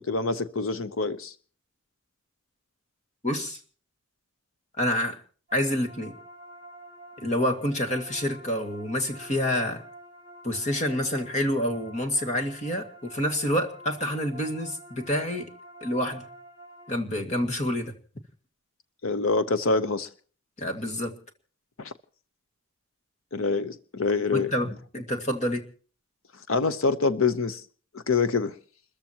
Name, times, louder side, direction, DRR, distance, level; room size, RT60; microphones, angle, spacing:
voice 1, 0.0-1.3 19.0-20.1 21.8-21.9 23.3-24.5 26.5-27.6 27.9-28.5, left 4 dB, 80° left, 12 dB, 0.9 m, -25 dB
voice 2, 3.2-3.6 4.8-5.2 5.5-6.1 7.2-9.8 10.4-15.5 15.8-16.3 16.9-17.9 20.6-21.2 24.3-25.6, left 1 dB, 35° left, 4 dB, 2.1 m, -28 dB
sound 1, 5.5-17.0, right 1 dB, 20° right, 4.3 m, -48 dB
29.5 x 14.5 x 2.9 m, 0.42 s
head